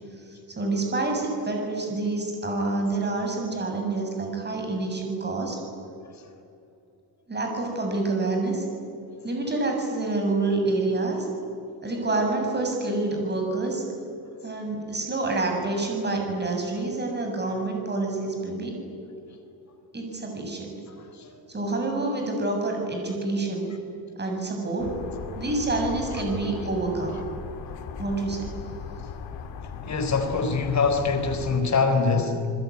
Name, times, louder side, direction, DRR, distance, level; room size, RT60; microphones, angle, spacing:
voice 1, 0.3-5.6 7.3-8.6 9.2-11.3 11.8-13.8 14.4-18.8 19.9-20.7 21.5-23.7 24.2-25.0 25.4-27.1 28.0-28.5, right 2 dB, 25° right, 2 dB, 7.2 m, -27 dB
voice 2, 20.9-21.4 26.1-26.2 26.5-26.7 27.1-27.2 29.8-32.5, left 4 dB, 40° left, 6 dB, 4.2 m, -25 dB
sound 1, 24.8-31.6, left 6 dB, 85° left, 2.6 m, -38 dB
29.0 x 20.5 x 9.9 m, 2.7 s
cardioid pair, 140°, 44 cm